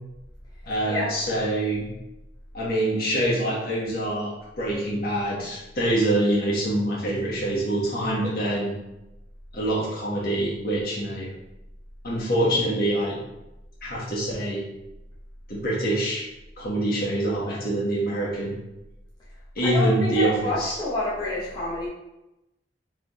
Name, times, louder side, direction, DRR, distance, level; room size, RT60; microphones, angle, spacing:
voice 1, 0.6-1.9 2.5-8.7 9.5-11.3 12.0-13.2 13.8-14.6 15.5-16.3 16.6-18.6 19.5-20.8, right 1 dB, 55° left, -5 dB, 1.5 m, -25 dB
voice 2, 19.6-21.9, left 2 dB, 25° left, -8 dB, 0.9 m, -28 dB
3.7 x 3.4 x 3.6 m, 0.95 s
head